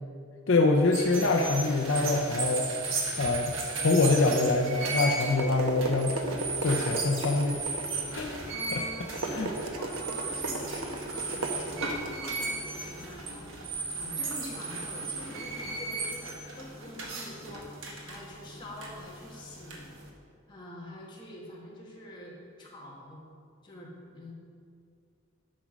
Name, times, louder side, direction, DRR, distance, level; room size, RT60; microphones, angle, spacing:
voice 1, 0.5-2.7 3.2-6.2 6.6-7.6 7.9-8.4 8.7-8.8 9.3-9.5, left 3 dB, 60° left, 2 dB, 0.6 m, -25 dB
sound 1, 0.8-20.1, right 3 dB, 65° right, 1.4 m, -36 dB
sound 2, 5.2-13.8, right 2 dB, 90° right, 1.0 m, -37 dB
voice 2, 8.5-19.9 20.5-23.2 23.6-24.3, left 1 dB, 20° left, -4 dB, 1.7 m, -46 dB
10.5 x 6.2 x 5.2 m, 2.3 s
head